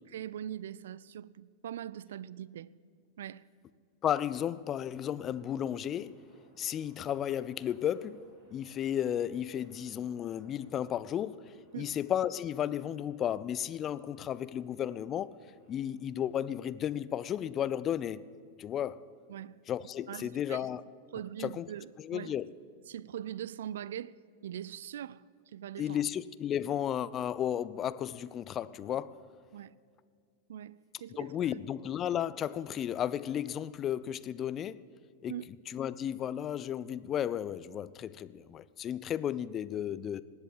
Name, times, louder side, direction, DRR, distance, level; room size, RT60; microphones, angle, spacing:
voice 1, 0.1-2.7 3.2-3.5 11.7-12.0 19.3-19.6 20.1-20.7 21.1-22.3 22.9-26.0 29.5-29.7 30.5-31.3 35.3-35.5, right 10 dB, 60° right, 0.4 m, -42 dB
voice 2, 4.0-6.2 6.6-8.2 8.5-15.3 15.7-18.3 18.6-19.0 19.7-20.8 21.4-21.7 22.0-22.5 25.8-29.2 31.2-34.9 35.2-35.3 35.7-40.2, left 10 dB, 30° left, 0.5 m, -34 dB
sound 1, 4.1-18.3, equal, 30° right, 5.5 m, -65 dB
19.0 x 8.1 x 8.6 m
figure-of-eight pair, 90°, 0 cm